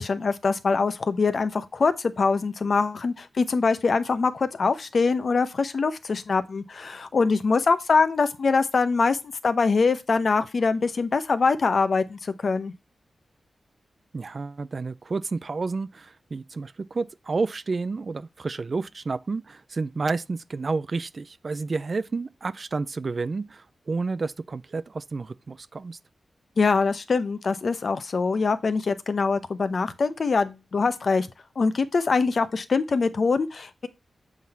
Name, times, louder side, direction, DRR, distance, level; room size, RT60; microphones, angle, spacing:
voice 1, 0.0-9.2 9.4-12.7 26.6-31.3 31.6-33.9, left 4 dB, 60° left, 0.8 m, -23 dB
voice 2, 14.1-26.0, right 4 dB, 50° right, 0.4 m, -30 dB
7.3 x 4.0 x 4.2 m
wide cardioid pair, 80°, 0 cm